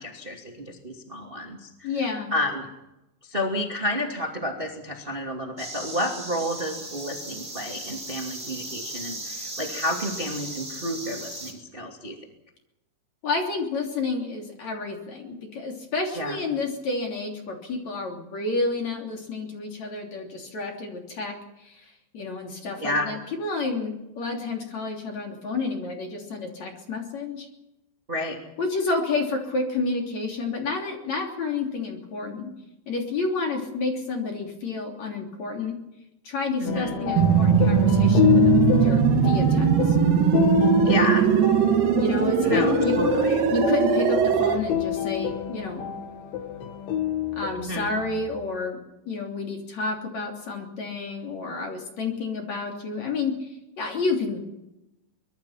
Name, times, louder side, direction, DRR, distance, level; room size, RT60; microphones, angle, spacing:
voice 1, 0.0-1.9 2.3-2.7 3.2-12.2 16.1-16.4 22.8-23.1 28.1-28.4 36.6-37.0 40.8-41.3 42.4-43.5 47.6-47.9, left 1 dB, 35° right, 1 dB, 0.8 m, -30 dB
voice 2, 1.8-2.3 13.2-21.8 22.1-27.5 28.6-32.5 32.9-35.8 36.2-40.0 41.9-42.9 43.5-45.9 47.4-48.8 49.1-54.4, left 3 dB, 40° left, 1 dB, 3.8 m, -30 dB
sound 1, 5.6-11.5, right 2 dB, 10° right, 5.2 m, -37 dB
sound 2, 36.7-48.4, left 11 dB, 65° left, 4.4 m, -27 dB
sound 3, 37.2-44.6, right 6 dB, 80° right, 5.2 m, -20 dB
24.5 x 21.5 x 5.9 m, 0.92 s
omnidirectional pair, 6.0 m